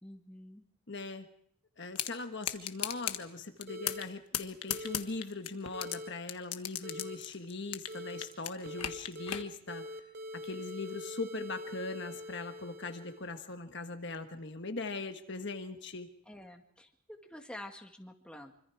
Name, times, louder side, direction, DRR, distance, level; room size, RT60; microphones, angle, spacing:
voice 1, 0.0-0.6 16.3-16.9 17.2-18.5, left 1 dB, 5° left, 2 dB, 1.9 m, -48 dB
voice 2, 0.9-1.3 1.8-9.8 10.3-16.1, left 3 dB, 50° left, 6 dB, 1.4 m, -40 dB
sound 1, 2.0-2.1 2.4-3.2 3.6-4.1 4.3-6.0 6.3-8.0 8.2-9.4, left 11 dB, 85° left, 1.4 m, -35 dB
sound 2, 3.7-4.0 4.7-5.0 5.7-6.1 6.8-7.2 7.9-8.3 8.6-9.4 9.7-13.4, left 1 dB, 45° right, 2.7 m, -44 dB
25.5 x 25.0 x 4.8 m, 0.66 s
head